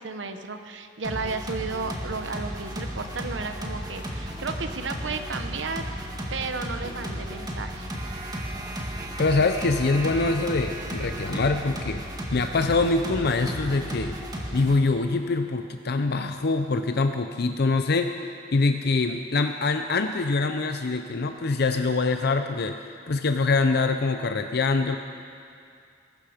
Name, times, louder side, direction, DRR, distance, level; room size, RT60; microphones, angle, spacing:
voice 1, 0.0-7.9, right 4 dB, 80° right, 7 dB, 1.0 m, -33 dB
sound 1, 1.0-14.8, equal, 20° right, 1.7 m, -34 dB
voice 2, 9.2-12.0 12.3-14.2 14.5-18.1 18.5-25.0, left 3 dB, 60° left, 7 dB, 0.6 m, -24 dB
21.0 x 12.5 x 5.1 m, 2.4 s
head